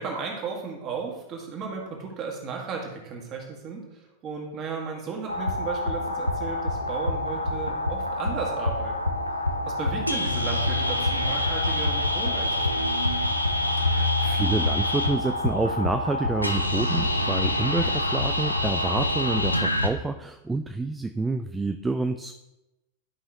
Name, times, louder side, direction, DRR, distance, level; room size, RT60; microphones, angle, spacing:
voice 1, 0.0-9.2 9.7-12.9, right 5 dB, 30° right, 0 dB, 1.9 m, -35 dB
sound 1, 5.3-19.9, left 1 dB, 85° left, 0.6 m, -26 dB
voice 2, 13.8-22.3, right 3 dB, 10° right, 7 dB, 0.3 m, -28 dB
12.0 x 5.5 x 2.9 m, 0.96 s
figure-of-eight pair, 90°, 0 cm